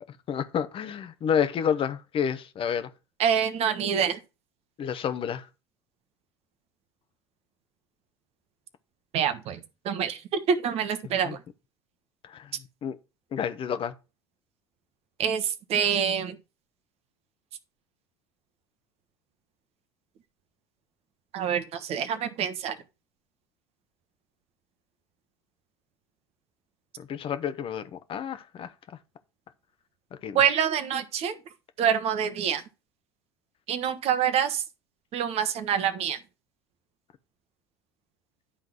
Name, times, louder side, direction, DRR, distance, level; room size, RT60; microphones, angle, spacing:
voice 1, 0.3-2.9 4.8-5.5 11.2-11.3 12.3-12.5 12.8-12.9 13.3-13.9 27.0-28.7 30.2-30.4, left 8 dB, 40° left, 1.1 m, -29 dB
voice 2, 3.2-4.2 9.1-11.4 15.2-16.4 21.3-22.8 30.3-31.4 31.8-32.6 33.7-34.6 35.1-36.2, right 8 dB, 50° right, 1.3 m, -26 dB
11.0 x 3.9 x 6.4 m
hypercardioid pair, 70°, 14 cm